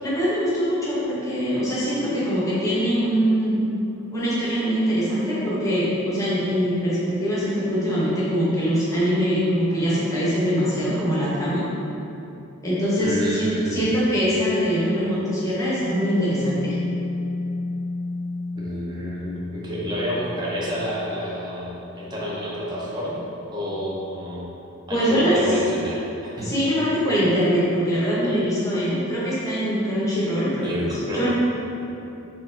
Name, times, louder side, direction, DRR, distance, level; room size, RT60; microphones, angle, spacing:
voice 1, 0.0-3.6 4.1-11.6 12.6-16.7 24.9-25.4 26.4-30.7 31.1-31.3, equal, 15° left, -9 dB, 0.7 m, -23 dB
voice 2, 13.0-13.9 18.5-24.5 24.9-26.5 30.6-31.3, equal, 20° right, -6 dB, 0.5 m, -29 dB
Mallet percussion, 15.8-23.3, left 2 dB, 65° right, 1.1 m, -32 dB
4.5 x 2.8 x 2.5 m, 2.9 s
head